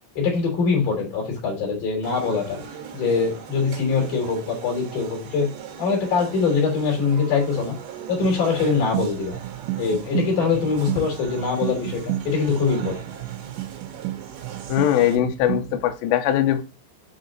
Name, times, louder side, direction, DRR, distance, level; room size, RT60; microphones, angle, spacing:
voice 1, 0.2-2.6 2.9-5.5 5.8-7.8 8.1-9.4 9.8-13.0, left 5 dB, 45° left, 0 dB, 4.7 m, -23 dB
sound 1, 2.0-15.2, right 7 dB, 70° right, 3.1 m, -40 dB
sound 2, 8.2-15.9, right 17 dB, 90° right, 3.1 m, -32 dB
voice 2, 14.7-16.6, left 11 dB, 80° left, 7 dB, 3.0 m, -21 dB
8.5 x 4.1 x 3.9 m, 0.29 s
omnidirectional pair, 5.2 m